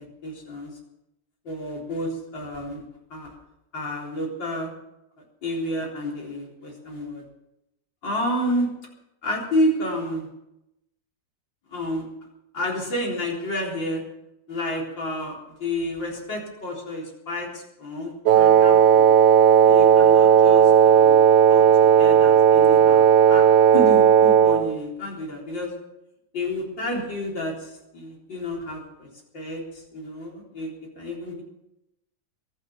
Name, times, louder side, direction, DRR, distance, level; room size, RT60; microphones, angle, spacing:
voice 1, 0.2-0.7 1.4-2.8 3.1-3.3 3.7-4.7 5.4-7.2 8.0-8.7 9.2-10.3 11.7-12.1 12.5-14.0 14.5-19.1 19.6-21.2 21.5-23.4 23.7-25.7 26.3-29.1 29.3-31.4, left 1 dB, 85° left, -2 dB, 4.5 m, -30 dB
Wind instrument woodwind instrument, 18.3-24.7, right 8 dB, 85° right, 1.5 m, -15 dB
23.0 x 8.9 x 7.1 m, 0.87 s
omnidirectional pair, 2.0 m